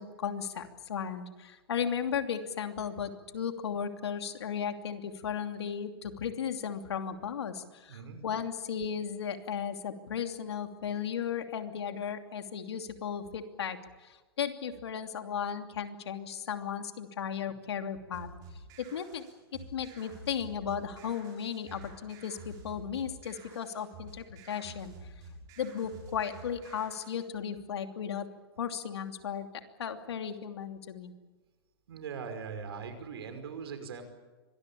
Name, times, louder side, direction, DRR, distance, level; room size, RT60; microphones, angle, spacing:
voice 1, 0.0-18.3 18.8-19.2 19.5-24.9 25.6-28.3 28.6-29.5 29.8-31.1, left 7 dB, 85° left, 6 dB, 2.9 m, -35 dB
voice 2, 7.9-8.2 31.9-34.0, right 6 dB, 70° right, 8 dB, 5.3 m, -40 dB
sound 1, 18.1-27.2, right 3 dB, 30° right, 6.9 m, -50 dB
24.5 x 20.0 x 8.6 m, 1.2 s
hypercardioid pair, 160°, 13 cm